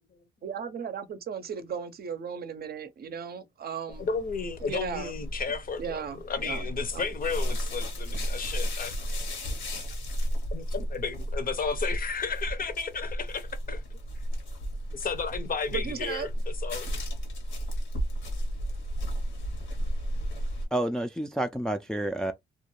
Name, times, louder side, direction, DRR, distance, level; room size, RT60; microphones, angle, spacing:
voice 1, 0.4-4.1 4.6-5.1 5.8-6.6 6.9-7.0 15.7-16.3, right 7 dB, 55° right, 0.6 m, -36 dB
sound 1, 3.9-20.7, equal, 85° left, 1.0 m, -33 dB
voice 2, 4.0-9.0 10.5-13.8 14.9-16.3 16.6-16.9, left 5 dB, 50° left, 0.6 m, -33 dB
voice 3, 20.7-22.3, right 1 dB, 5° left, 0.3 m, -29 dB
2.4 x 2.2 x 3.0 m
cardioid pair, 70°, 19 cm